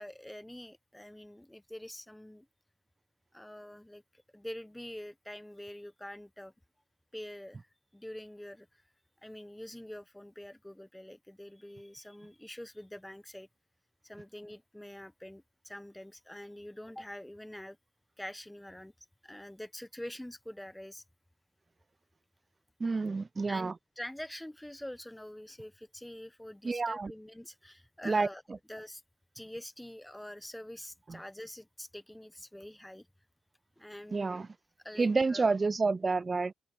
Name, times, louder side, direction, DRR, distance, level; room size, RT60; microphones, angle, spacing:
voice 1, 0.0-2.5 3.3-4.0 4.3-6.5 7.1-7.6 7.9-8.8 9.2-13.5 14.0-17.8 18.2-18.9 19.2-21.0 23.5-28.4 28.7-29.0 29.3-33.1 33.8-34.4 34.8-35.5, left 1 dB, 5° left, 1.4 m, -45 dB
voice 2, 22.8-23.7 26.6-27.1 28.0-28.3 31.1-31.2 34.1-34.5 35.0-36.5, right 4 dB, 35° right, 0.3 m, -29 dB
supercardioid pair, 65°, 0 cm